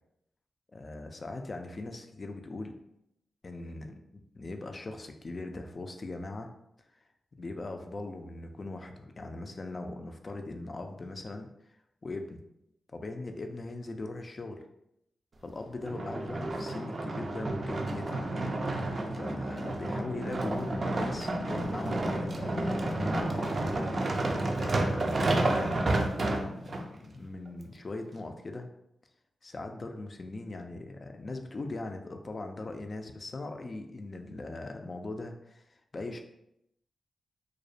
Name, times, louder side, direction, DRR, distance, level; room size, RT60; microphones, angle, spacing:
voice 1, 0.7-2.8 3.4-6.5 7.4-11.5 12.0-12.4 12.9-14.7 15.4-18.2 19.1-23.5 24.6-28.7 29.4-36.2, left 2 dB, 45° left, 5 dB, 0.3 m, -40 dB
sound 1, 15.8-26.8 27.5-27.6, right 2 dB, 55° right, 0.3 m, -30 dB
2.3 x 2.0 x 2.6 m, 0.80 s
supercardioid pair, 45°, 0 cm